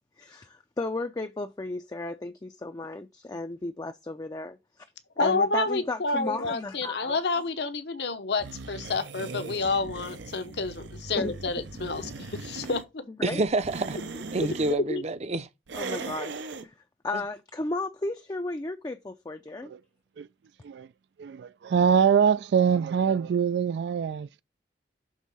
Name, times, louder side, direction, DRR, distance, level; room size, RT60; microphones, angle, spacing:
voice 1, 0.2-4.6 5.2-7.2 11.2-11.3 13.2-13.4 14.1-14.2 15.7-16.7 17.0-19.7, left 2 dB, 20° left, 0.4 m, -34 dB
voice 2, 5.2-13.0 14.8-15.0, left 3 dB, 70° left, 0.9 m, -29 dB
sound 1, 8.4-12.9 13.5-14.8 15.7-16.7, right 3 dB, 90° right, 0.7 m, -39 dB
voice 3, 13.2-14.0 14.3-15.5 17.1-17.2, right 2 dB, 40° right, 0.6 m, -28 dB
voice 4, 21.2-24.4, right 7 dB, 70° right, 0.3 m, -24 dB
6.3 x 3.6 x 5.4 m
head